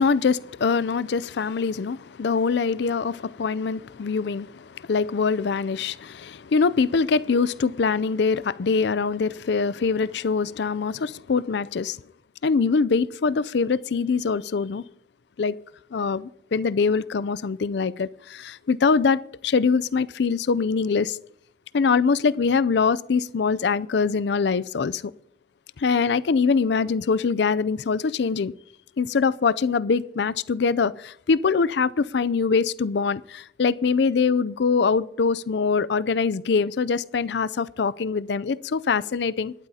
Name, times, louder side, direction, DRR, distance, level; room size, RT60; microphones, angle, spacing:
voice 1, 0.0-12.0 12.4-14.8 15.4-15.6 15.9-21.2 21.7-25.0 25.8-28.5 29.0-39.5, left 5 dB, 60° left, 0.4 m, -23 dB
26.5 x 12.0 x 2.8 m
head